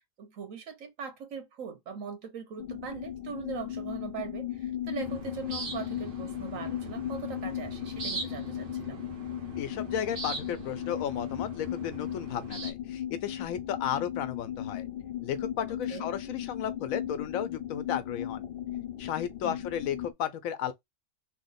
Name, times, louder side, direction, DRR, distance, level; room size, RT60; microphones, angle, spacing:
voice 1, 0.2-9.0 15.7-16.1 19.4-19.6, right 6 dB, 75° right, 1.3 m, -41 dB
sound 1, 2.6-20.1, left 11 dB, 60° left, 0.6 m, -37 dB
sound 2, 5.0-12.7, right 3 dB, 50° right, 1.0 m, -41 dB
voice 2, 9.6-14.9 15.2-18.5 19.0-20.7, left 9 dB, 85° left, 1.0 m, -34 dB
3.2 x 2.0 x 4.0 m
omnidirectional pair, 1.4 m